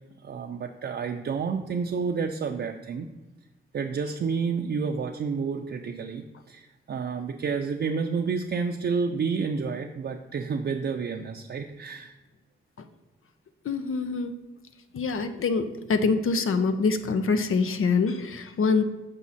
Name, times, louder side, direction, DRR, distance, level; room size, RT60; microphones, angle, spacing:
voice 1, 0.2-3.1 3.7-12.1, right 5 dB, 55° right, 3 dB, 0.4 m, -30 dB
voice 2, 13.6-14.3 14.9-18.8, left 4 dB, 85° left, 9 dB, 0.7 m, -25 dB
7.2 x 5.3 x 4.1 m, 1.1 s
wide cardioid pair, 120°, 21 cm